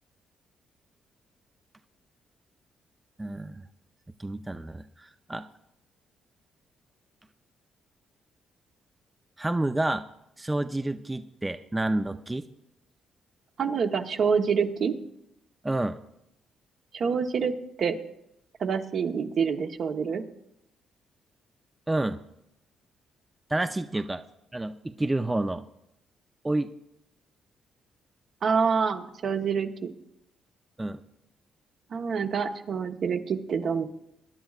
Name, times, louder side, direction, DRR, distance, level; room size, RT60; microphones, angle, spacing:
voice 1, 3.2-3.6 4.2-5.4 9.4-10.0 10.4-12.5 15.6-16.0 21.9-22.2 23.5-24.2 24.5-25.6 26.4-26.7 30.8-31.0, right 2 dB, 15° right, 8 dB, 0.5 m, -29 dB
voice 2, 13.6-14.9 16.9-17.5 17.8-18.0 18.6-20.2 28.4-29.9 31.9-33.9, right 6 dB, 60° right, 5 dB, 1.0 m, -26 dB
22.0 x 10.5 x 2.4 m, 0.82 s
cardioid pair, 75°, 0 cm